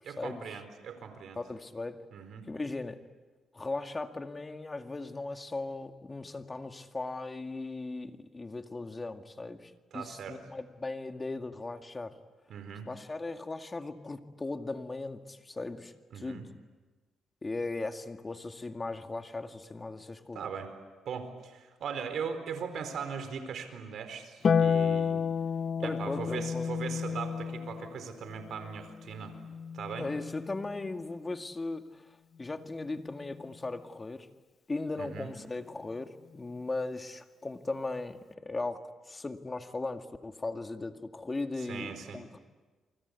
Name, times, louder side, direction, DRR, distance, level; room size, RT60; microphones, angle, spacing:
voice 1, 0.0-1.4 2.1-2.5 9.9-10.4 12.5-12.9 16.1-16.4 20.3-20.7 21.0-25.2 25.8-29.3 29.7-30.1 35.0-35.3 41.6-42.2, right 6 dB, 65° right, 8 dB, 4.4 m, -39 dB
voice 2, 1.4-2.0 2.5-3.0 3.5-12.1 12.9-16.4 17.4-20.4 25.8-26.7 30.0-32.0 32.4-34.3 34.7-42.4, left 3 dB, 25° left, 6 dB, 2.1 m, -38 dB
Harp, 24.4-31.0 32.6-33.6, left 6 dB, 50° left, 0.9 m, -32 dB
29.0 x 24.5 x 8.4 m, 1.3 s
cardioid pair, 90°, 0 cm